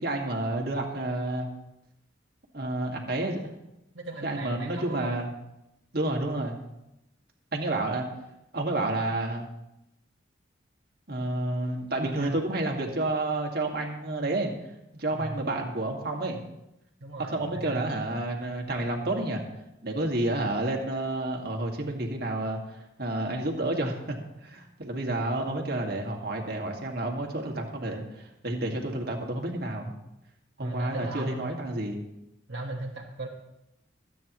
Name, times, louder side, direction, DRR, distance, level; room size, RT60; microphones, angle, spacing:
voice 1, 0.0-1.5 2.5-3.5 4.2-5.3 5.9-6.6 7.5-8.1 8.5-9.5 11.1-14.5 14.9-16.4 17.2-19.4 19.8-29.9 30.6-32.0, right 2 dB, 55° right, 1 dB, 2.0 m, -30 dB
voice 2, 3.9-5.2 12.0-12.4 15.1-15.4 17.0-17.9 25.1-25.2 30.6-31.6 32.5-33.3, right 2 dB, 70° right, -3 dB, 1.5 m, -37 dB
25.5 x 9.3 x 3.1 m, 0.88 s
head